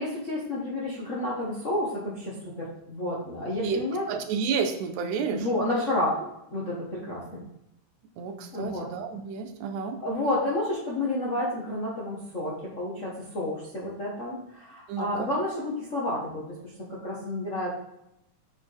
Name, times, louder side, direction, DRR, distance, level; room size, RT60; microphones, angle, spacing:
voice 1, 0.0-4.1 5.3-6.2 6.5-7.4 8.5-8.9 10.0-17.7, left 1 dB, 45° left, -6 dB, 1.0 m, -30 dB
voice 2, 4.1-5.5 8.2-10.0 14.9-15.3, right 6 dB, 80° right, 7 dB, 2.1 m, -30 dB
6.4 x 6.3 x 3.4 m, 0.82 s
omnidirectional pair, 3.5 m